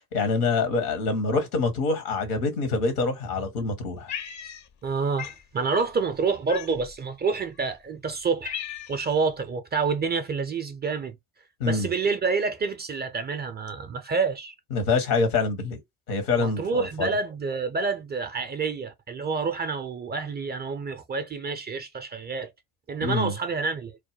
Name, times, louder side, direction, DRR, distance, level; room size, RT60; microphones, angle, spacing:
voice 1, 0.0-4.1 11.6-11.9 14.7-15.8 16.1-17.1 23.0-23.3, left 3 dB, 75° left, 0.9 m, -25 dB
Cat, 4.1-4.9 5.2-5.4 6.5-7.0 7.7-7.8 8.1-9.1, left 9 dB, 40° left, 0.5 m, -36 dB
voice 2, 4.8-8.6 8.9-11.2 11.6-14.5 16.4-22.5 22.9-24.0, right 4 dB, 25° right, 0.4 m, -28 dB
2.3 x 2.1 x 3.0 m
figure-of-eight pair, 45°, 46 cm